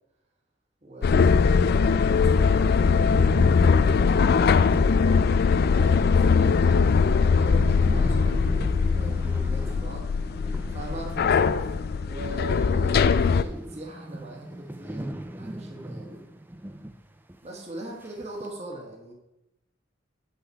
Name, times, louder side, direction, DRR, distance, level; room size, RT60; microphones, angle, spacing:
voice 1, 0.8-3.4 5.6-10.1 10.7-11.7 12.0-16.2 17.4-19.1, right 1 dB, 35° right, -2 dB, 1.6 m, -41 dB
sound 1, 1.0-13.4, left 5 dB, 50° left, 0.3 m, -21 dB
sound 2, 1.3-1.4 1.8-1.9 2.0-12.3 12.5-17.0 17.3-17.4 18.0-18.5, right 1 dB, 10° right, 0.4 m, -38 dB
8.4 x 5.6 x 4.7 m, 0.92 s
head